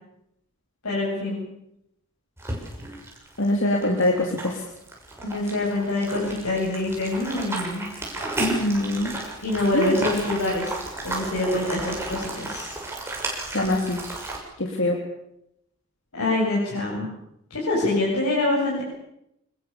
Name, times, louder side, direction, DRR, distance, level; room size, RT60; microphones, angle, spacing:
voice 1, 0.8-1.4 5.2-7.9 9.4-10.8 11.0-12.8 16.1-17.1 17.5-18.8, left 2 dB, 90° left, -4 dB, 7.9 m, -25 dB
sound 1, 2.4-14.4, right 2 dB, 10° right, 6.4 m, -33 dB
voice 2, 3.4-4.5 8.4-9.1 9.7-10.0 13.5-14.0 14.6-15.0, left 1 dB, 60° left, 1 dB, 3.3 m, -23 dB
27.0 x 21.5 x 7.1 m, 0.80 s
head